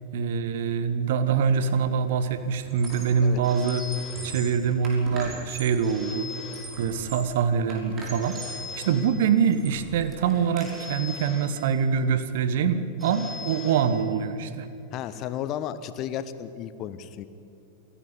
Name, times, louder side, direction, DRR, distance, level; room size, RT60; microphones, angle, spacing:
voice 1, 0.1-3.8 4.2-6.3 6.8-8.4 8.7-14.7, right 6 dB, 55° right, 12 dB, 1.3 m, -24 dB
Squeak, 1.4-1.7 2.0-3.3 3.6-5.8 6.3-7.3 7.7-8.6 9.1-10.7, right 2 dB, 25° right, 5.7 m, -41 dB
Telephone, 3.4-4.9 5.8-7.3 8.2-9.7 10.6-12.1 13.0-14.5, left 4 dB, 5° right, 6.7 m, -41 dB
voice 2, 14.9-17.3, left 10 dB, 35° left, 13 dB, 1.1 m, -33 dB
27.5 x 11.5 x 10.0 m, 2.6 s
figure-of-eight pair, 90°, 0 cm